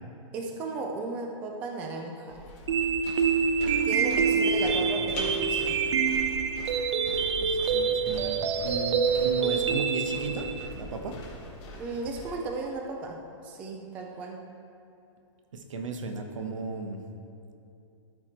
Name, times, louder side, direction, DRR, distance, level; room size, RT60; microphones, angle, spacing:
voice 1, 0.3-2.4 3.7-5.8 11.8-14.5, right 3 dB, 10° right, 2 dB, 0.3 m, -35 dB
sound 1, 2.3-12.3, left 1 dB, 25° left, 1.7 m, -42 dB
sound 2, 2.7-10.7, right 6 dB, 60° right, 0.6 m, -26 dB
voice 2, 4.8-5.1 7.4-8.4 8.6-11.2 15.5-17.0, right 3 dB, 80° right, 5 dB, 1.2 m, -35 dB
13.0 x 4.8 x 4.4 m, 2.7 s
hypercardioid pair, 170°, 16 cm